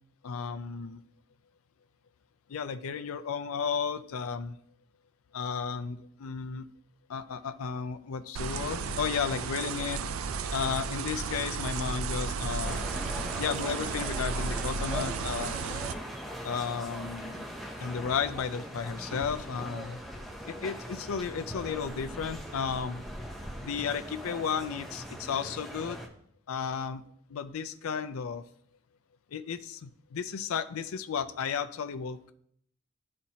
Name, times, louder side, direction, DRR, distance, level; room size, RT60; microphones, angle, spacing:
voice 1, 0.2-1.0 2.5-4.6 5.3-6.7 7.1-10.0 10.5-12.8 13.4-15.6 16.4-17.5 17.8-20.0 20.5-23.0 23.6-26.0 26.5-27.0 27.3-28.4 29.3-32.3, left 6 dB, 90° left, 10 dB, 0.4 m, -33 dB
sound 1, 8.4-15.9, right 5 dB, 85° right, 0.4 m, -34 dB
sound 2, 12.6-26.1, equal, ahead, 0.7 m, -40 dB
12.0 x 4.3 x 2.8 m, 0.67 s
head